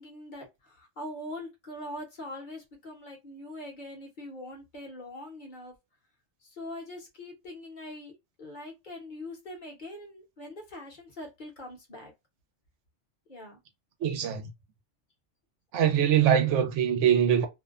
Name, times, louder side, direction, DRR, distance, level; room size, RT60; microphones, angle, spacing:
voice 1, 0.0-5.7 6.5-8.1 8.4-12.1 13.3-13.6, left 1 dB, 45° left, 0.9 m, -42 dB
voice 2, 14.0-14.5 15.7-17.5, right 9 dB, 85° right, 0.9 m, -23 dB
2.5 x 2.1 x 2.3 m
omnidirectional pair, 1.2 m